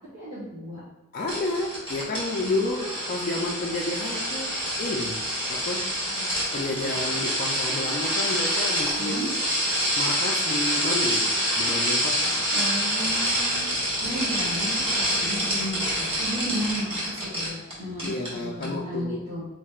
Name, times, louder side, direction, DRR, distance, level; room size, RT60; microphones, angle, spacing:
voice 1, 0.1-0.8 2.6-3.2 6.2-6.3 9.0-9.3 12.5-13.6 14.0-19.4, equal, 55° right, -11 dB, 1.3 m, -34 dB
voice 2, 1.1-5.9 6.5-9.4 10.0-12.4 18.0-19.3, left 2 dB, 40° left, -2 dB, 0.3 m, -31 dB
sound 1, 1.3-17.7 18.0-18.3 18.6-18.7, equal, 25° right, 1.2 m, -27 dB
4.2 x 3.1 x 2.3 m, 1.1 s
head